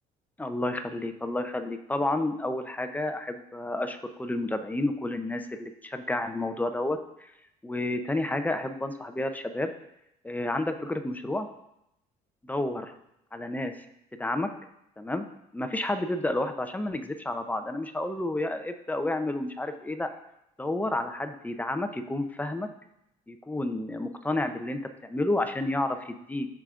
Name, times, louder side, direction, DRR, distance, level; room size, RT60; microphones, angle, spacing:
voice 1, 0.4-7.0 7.6-9.7 10.2-11.5 12.4-12.9 13.3-13.7 14.2-14.5 15.0-15.3 15.5-20.1 20.6-22.7 23.3-26.5, left 2 dB, 10° left, 7 dB, 0.6 m, -30 dB
13.5 x 5.0 x 2.5 m, 0.82 s
cardioid pair, 110°, 17 cm